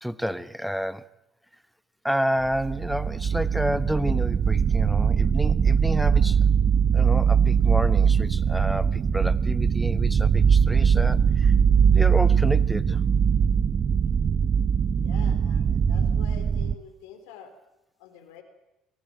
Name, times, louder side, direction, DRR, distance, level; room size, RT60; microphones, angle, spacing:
voice 1, 0.0-1.1 2.0-6.4 6.9-11.5 11.9-13.0, equal, ahead, 16 dB, 1.0 m, -30 dB
sound 1, 2.4-16.7, right 7 dB, 40° right, 0.7 m, -21 dB
voice 2, 15.0-17.5 18.0-18.4, left 8 dB, 75° left, 7 dB, 3.8 m, -46 dB
23.0 x 15.0 x 9.1 m, 0.90 s
hypercardioid pair, 65°, 0 cm